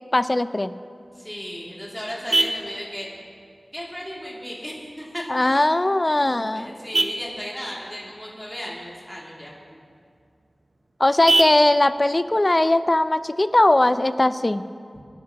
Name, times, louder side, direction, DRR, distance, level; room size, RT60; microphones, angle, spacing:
voice 1, 0.1-0.7 5.3-6.7 11.0-14.6, left 1 dB, 30° left, 13 dB, 0.4 m, -19 dB
Vehicle horn car horn honking, 1.0-14.0, right 2 dB, 65° right, 0.7 m, -31 dB
voice 2, 1.1-3.1 3.7-5.2 5.5-5.6 6.1-9.5, equal, 5° left, -6 dB, 2.5 m, -35 dB
22.0 x 10.5 x 2.9 m, 2.3 s
wide cardioid pair, 65°, 0 cm